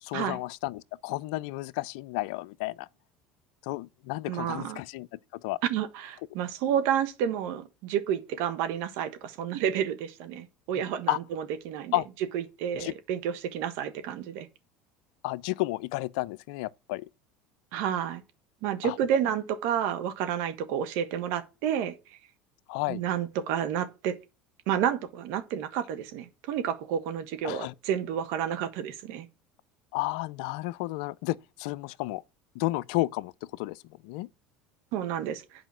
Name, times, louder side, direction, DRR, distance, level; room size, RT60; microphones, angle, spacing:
voice 1, 0.0-2.9 3.6-5.6 10.8-11.2 11.9-12.1 12.8-12.9 15.2-17.1 18.8-19.0 22.7-23.0 27.4-27.7 29.9-32.2 32.5-34.3, left 19 dB, 75° left, 0.4 m, -32 dB
voice 2, 4.3-4.8 5.7-12.0 12.3-14.5 17.7-18.2 18.6-21.9 22.9-24.1 24.7-29.3 34.9-35.4, right 9 dB, 70° right, 1.5 m, -30 dB
9.1 x 5.0 x 7.4 m
hypercardioid pair, 85°, 4 cm